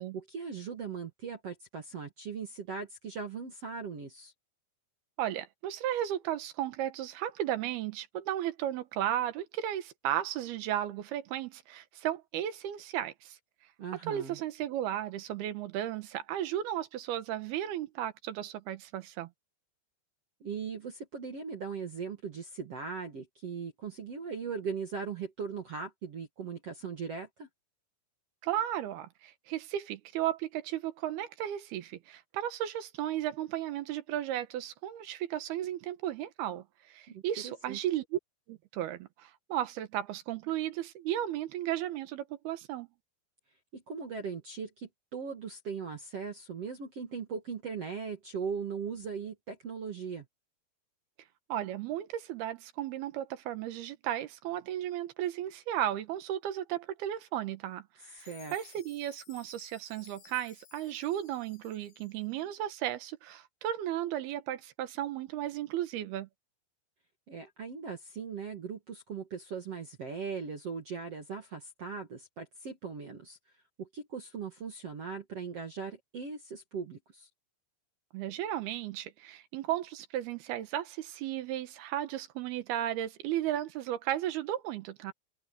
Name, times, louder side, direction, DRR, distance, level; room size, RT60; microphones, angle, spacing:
voice 1, 0.1-4.3 13.8-14.4 20.4-27.5 37.1-37.8 43.7-50.3 58.1-58.5 67.3-73.4 73.8-77.3, right 5 dB, 50° right, 2.0 m, -39 dB
voice 2, 5.2-13.4 14.1-19.3 28.4-38.2 38.5-42.9 51.5-66.3 78.1-85.1, right 12 dB, 70° right, 2.9 m, -35 dB
Chime, 58.2-62.4, left 7 dB, 80° left, 6.0 m, -57 dB
omnidirectional pair, 5.3 m